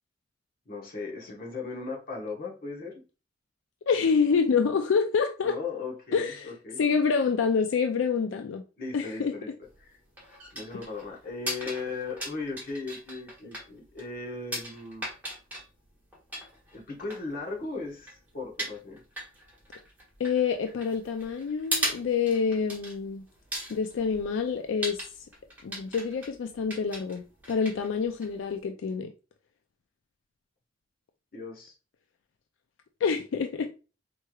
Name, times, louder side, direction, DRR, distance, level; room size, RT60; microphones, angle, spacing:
voice 1, 0.7-3.0 5.4-6.8 8.8-9.5 9.8-9.9 10.5-15.1 16.7-19.0 31.3-31.7, left 3 dB, 50° left, 1.2 m, -37 dB
voice 2, 3.9-5.6 6.1-6.5 6.8-8.6 8.9-9.3 20.2-23.3 23.7-25.0 25.6-29.1 33.0-33.7, left 5 dB, 90° left, 0.4 m, -27 dB
sound 1, 9.6-28.6, right 1 dB, 10° right, 1.3 m, -39 dB
4.5 x 3.1 x 2.3 m
head